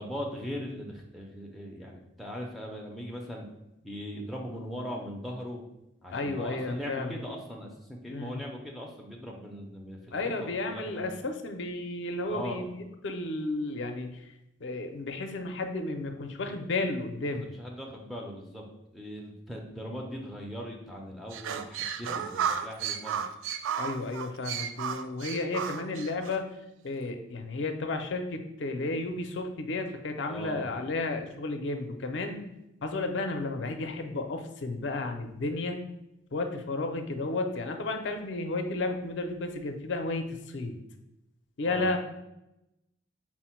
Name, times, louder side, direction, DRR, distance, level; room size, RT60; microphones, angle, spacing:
voice 1, 0.0-3.5 3.8-5.6 6.0-11.0 12.3-12.7 17.2-18.6 18.9-23.2 30.3-30.7 41.6-42.0, equal, ahead, -2 dB, 0.5 m, -39 dB
voice 2, 6.1-7.2 8.1-8.4 10.1-14.3 14.6-17.5 23.8-26.6 26.8-32.5 32.8-35.8 36.3-40.8 41.6-42.0, left 2 dB, 70° left, 5 dB, 0.5 m, -33 dB
sound 1, 21.3-26.4, right 8 dB, 80° right, 0.3 m, -33 dB
4.4 x 2.1 x 4.3 m, 0.88 s
head